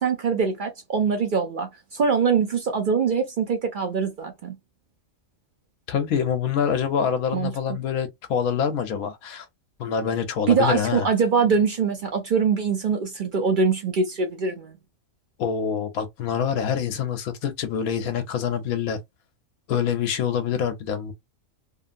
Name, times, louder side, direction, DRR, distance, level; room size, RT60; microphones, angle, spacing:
voice 1, 0.0-4.5 7.3-7.5 10.5-14.8, right 5 dB, 60° right, 0.5 m, -23 dB
voice 2, 5.9-9.5 9.8-11.1 15.4-19.0 19.7-21.1, left 7 dB, 85° left, 1.1 m, -25 dB
2.8 x 2.6 x 2.5 m
omnidirectional pair, 1.5 m